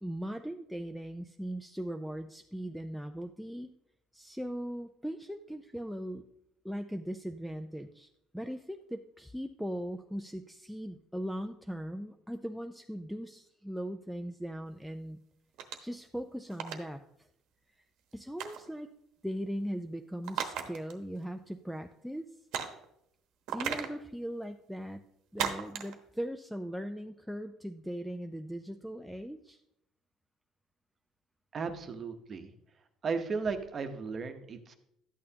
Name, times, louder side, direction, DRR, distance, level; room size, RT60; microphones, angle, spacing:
voice 1, 0.0-3.7 4.1-6.2 6.6-15.2 15.8-17.0 18.1-18.9 19.2-22.2 23.5-25.0 25.3-29.6, equal, ahead, 5 dB, 0.3 m, -39 dB
sound 1, 15.6-15.9 16.5-16.8 18.4-18.7 20.2-20.9 21.2-21.3 22.5-22.8 23.5-24.0 25.4-25.9, right 8 dB, 70° right, 1.0 m, -35 dB
voice 2, 31.5-32.5 33.0-34.7, right 5 dB, 30° right, 7 dB, 0.8 m, -35 dB
12.0 x 8.7 x 2.8 m, 0.77 s
cardioid pair, 155°, 0 cm